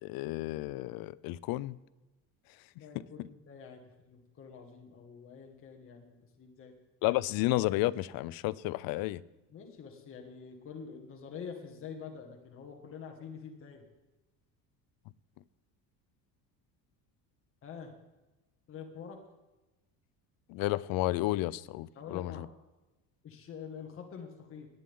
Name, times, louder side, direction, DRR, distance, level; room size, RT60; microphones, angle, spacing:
voice 1, 0.0-1.8 2.9-3.0 7.0-9.2 20.5-22.5, left 17 dB, 65° left, 0.6 m, -32 dB
voice 2, 2.8-6.7 9.5-13.8 17.6-17.9 18.7-19.2 22.0-22.5 23.2-24.7, left 6 dB, 35° left, 2.0 m, -46 dB
18.5 x 10.0 x 3.7 m
cardioid pair, 145°, 37 cm